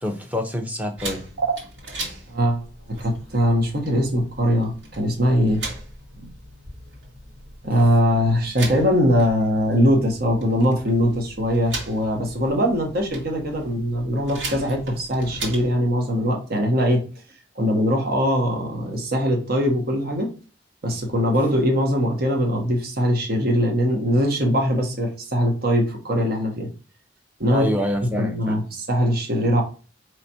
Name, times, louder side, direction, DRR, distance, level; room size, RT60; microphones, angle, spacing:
voice 1, 0.0-1.2 27.5-28.6, left 1 dB, 10° right, 4 dB, 0.8 m, -26 dB
sound 1, 1.0-15.8, right 2 dB, 85° right, 2.1 m, -38 dB
voice 2, 2.3-2.6 2.9-5.7 6.2-6.3 7.6-17.0 17.5-20.3 20.8-26.7 27.4-27.7 28.2-29.6, equal, 60° right, 2 dB, 1.2 m, -21 dB
4.9 x 3.2 x 2.8 m, 0.36 s
head